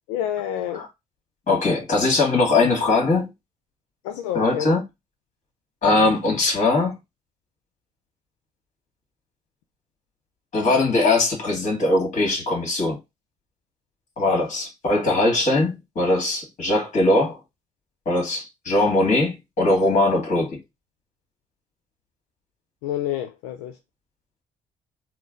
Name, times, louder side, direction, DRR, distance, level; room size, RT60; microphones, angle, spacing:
voice 1, 0.1-0.8 4.0-4.7 22.8-23.7, left 11 dB, 85° left, 0.4 m, -28 dB
voice 2, 1.5-3.3 4.3-4.8 5.8-6.9 10.5-13.0 14.2-17.4 18.1-20.6, left 2 dB, 50° left, 2.0 m, -21 dB
3.7 x 2.2 x 3.8 m
supercardioid pair, 60°, 16 cm